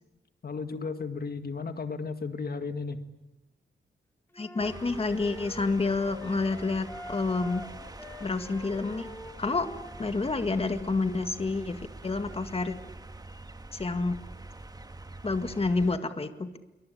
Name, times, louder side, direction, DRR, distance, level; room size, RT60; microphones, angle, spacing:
voice 1, 0.4-3.0, left 4 dB, 55° left, 8 dB, 1.9 m, -34 dB
voice 2, 4.3-7.6 8.2-9.1 9.4-9.7 10.0-12.8 13.7-14.2 15.2-16.6, left 3 dB, 30° left, 8 dB, 2.0 m, -29 dB
sound 1, 4.3-10.2, left 1 dB, 10° left, 2.6 m, -45 dB
sound 2, 4.6-16.0, right 2 dB, 20° right, 1.6 m, -45 dB
27.0 x 24.0 x 8.6 m, 1.0 s
wide cardioid pair, 100°, 19 cm